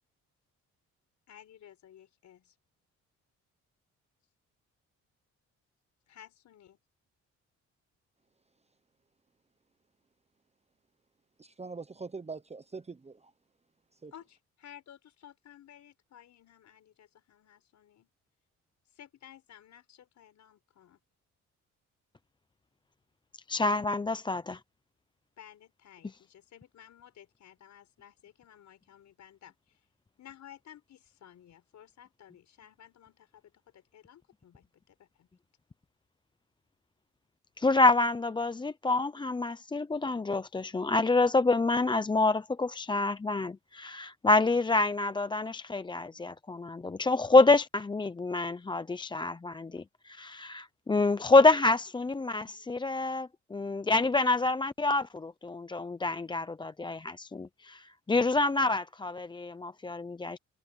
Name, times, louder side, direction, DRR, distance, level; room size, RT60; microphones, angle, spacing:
voice 1, 1.3-2.5 6.1-6.8 14.1-18.1 18.9-21.0 25.4-29.8 30.2-35.3, left 10 dB, 65° left, 4.9 m, -55 dB
voice 2, 11.4-13.3 14.0-14.1, right 4 dB, 20° right, 1.0 m, -42 dB
voice 3, 23.5-24.6 37.6-60.4, left 3 dB, 15° left, 0.6 m, -27 dB
cardioid pair, 90°, 30 cm